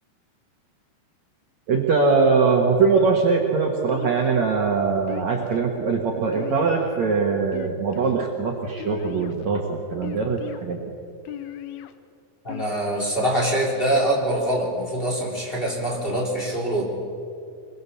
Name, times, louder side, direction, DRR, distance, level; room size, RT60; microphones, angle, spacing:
voice 1, 1.7-10.8, right 4 dB, 55° right, 0 dB, 2.5 m, -22 dB
sound 1, 3.9-4.5 5.1-5.6 6.3-7.1 7.5-8.1 8.8-9.5 10.0-10.6 11.3-11.9 12.5-13.1, left 12 dB, 80° left, 2.8 m, -38 dB
voice 2, 12.4-16.8, right 1 dB, 15° left, -2 dB, 3.7 m, -24 dB
24.5 x 22.5 x 7.0 m, 2.5 s
omnidirectional pair, 4.5 m